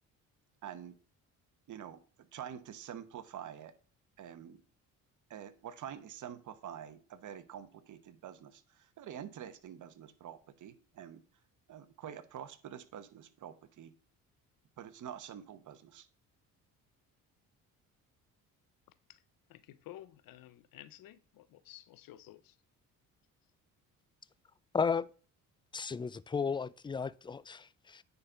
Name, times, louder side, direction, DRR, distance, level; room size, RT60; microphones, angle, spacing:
voice 1, 0.6-0.9 1.7-2.0 2.3-3.7 4.2-4.6 5.3-11.2 11.7-13.9 14.8-16.1, right 9 dB, 60° right, 1.1 m, -47 dB
voice 2, 19.5-22.6, left 13 dB, 75° left, 0.9 m, -53 dB
voice 3, 24.7-25.1 25.7-28.0, left 5 dB, 15° left, 0.4 m, -34 dB
9.6 x 4.1 x 5.7 m
cardioid pair, 85°, 35 cm